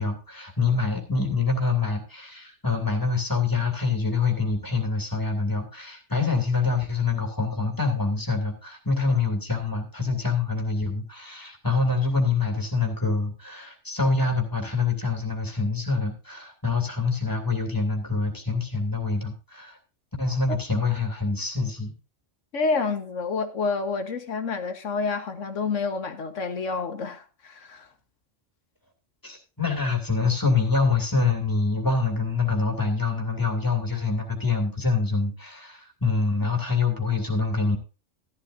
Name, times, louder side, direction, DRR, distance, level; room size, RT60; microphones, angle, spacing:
voice 1, 0.0-19.8 20.2-21.9 29.2-37.8, left 4 dB, 15° left, 2.7 m, -25 dB
voice 2, 22.5-27.9, left 4 dB, 90° left, 1.6 m, -28 dB
14.5 x 11.5 x 2.6 m
omnidirectional pair, 1.3 m